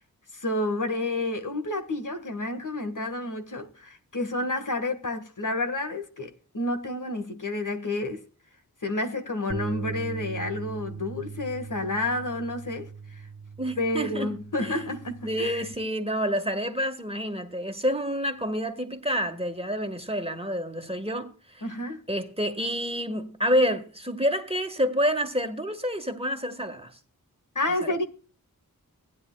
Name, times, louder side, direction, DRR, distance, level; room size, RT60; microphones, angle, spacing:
voice 1, 0.3-8.2 8.8-13.3 13.8-15.6 21.6-22.0 27.6-28.0, left 2 dB, 60° left, 1.9 m, -30 dB
sound 1, 9.5-15.7, right 5 dB, 35° right, 1.3 m, -39 dB
voice 2, 13.6-14.7 15.2-21.6 22.1-27.0 27.8-28.0, equal, 15° right, 1.7 m, -28 dB
18.5 x 9.9 x 2.4 m
wide cardioid pair, 55°, 36 cm